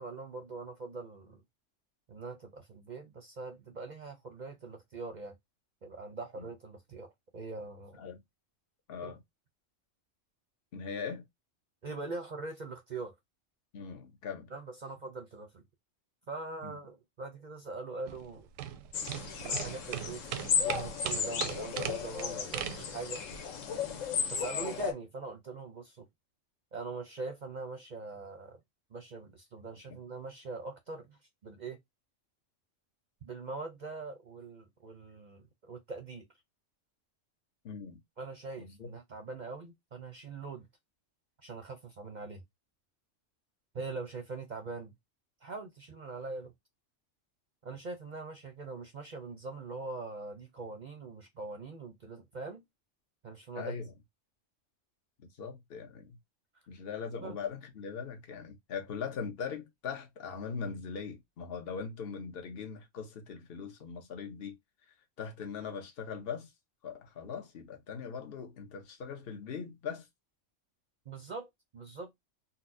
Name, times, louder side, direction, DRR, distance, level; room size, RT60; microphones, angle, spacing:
voice 1, 0.0-1.4 2.1-5.3 5.8-8.0 9.0-9.1 11.8-13.1 14.5-15.6 16.3-18.5 19.4-23.2 24.3-26.1 26.7-28.6 28.9-31.8 33.2-36.2 38.2-40.7 41.4-42.4 43.7-44.9 45.4-46.5 47.6-52.6 53.2-53.8 57.2-57.4 71.1-72.1, right 3 dB, 50° right, 0.6 m, -42 dB
voice 2, 10.7-11.2 13.7-14.5 16.6-16.8 29.9-30.0 37.6-38.0 38.6-38.9 53.5-53.9 55.4-56.2 56.7-64.6 65.2-66.5 66.8-70.1, left 6 dB, 55° left, 1.1 m, -40 dB
sound 1, 18.1-23.4, right 10 dB, 90° right, 1.0 m, -39 dB
sound 2, 18.9-24.9, left 7 dB, 85° left, 1.2 m, -34 dB
4.1 x 2.0 x 2.6 m
omnidirectional pair, 1.3 m